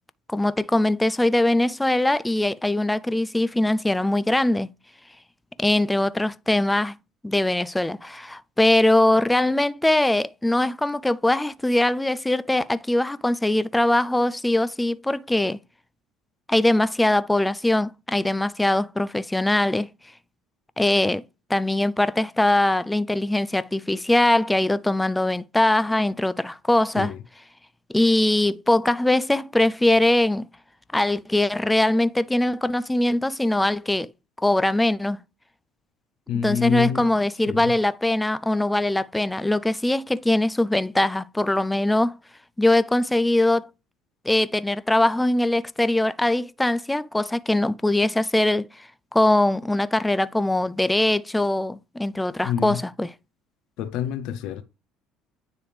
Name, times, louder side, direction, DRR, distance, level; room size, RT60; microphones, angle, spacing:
voice 1, 0.3-4.7 5.6-6.9 7.2-15.6 16.5-19.9 20.8-21.2 21.5-27.1 27.9-30.5 30.9-34.1 34.4-35.2 36.4-42.2 42.6-43.7 44.2-53.1, left 1 dB, 5° left, 0.3 m, -22 dB
voice 2, 36.3-37.2 37.5-37.8 52.4-52.8 53.8-54.6, left 9 dB, 70° left, 0.6 m, -27 dB
9.7 x 3.4 x 3.3 m
cardioid pair, 110°, 0 cm